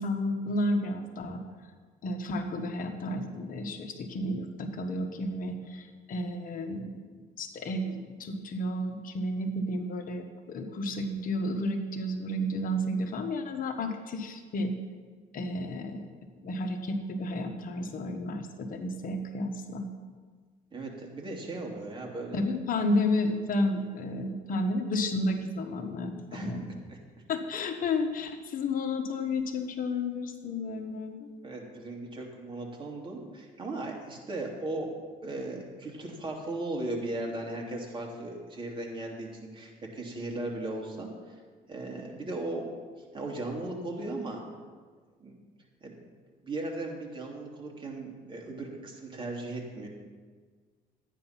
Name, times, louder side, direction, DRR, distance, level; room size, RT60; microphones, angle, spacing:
voice 1, 0.0-1.4 2.0-7.0 7.4-14.7 15.3-16.1 16.4-19.9 22.3-26.7 27.3-31.3, left 1 dB, 55° left, 5 dB, 1.4 m, -32 dB
voice 2, 20.7-22.4 26.3-27.2 31.4-34.9 35.2-41.4 41.7-42.7 43.1-44.4 45.2-45.3 45.8-46.0 46.4-49.9, right 2 dB, 30° right, 0 dB, 2.7 m, -37 dB
13.0 x 9.3 x 5.9 m, 1.5 s
cardioid pair, 110°, 17 cm